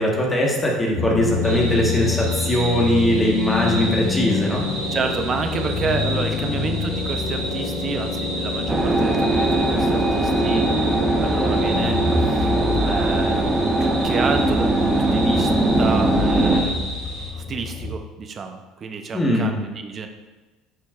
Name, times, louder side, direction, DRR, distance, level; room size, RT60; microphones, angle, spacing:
voice 1, 0.0-4.6 19.1-19.5, equal, 20° left, -2 dB, 1.4 m, -20 dB
sound 1, 1.0-17.9, left 4 dB, 50° left, 0.9 m, -27 dB
sound 2, 1.4-17.3, right 1 dB, 90° right, 1.7 m, -33 dB
voice 2, 4.9-12.5 12.8-13.5 13.8-15.5 15.8-17.0 17.3-20.1, right 5 dB, 40° right, 6 dB, 0.7 m, -29 dB
sound 3, 8.7-16.6, right 2 dB, 20° right, 1.2 m, -20 dB
9.4 x 4.4 x 2.5 m, 1.2 s
hypercardioid pair, 70°, 0 cm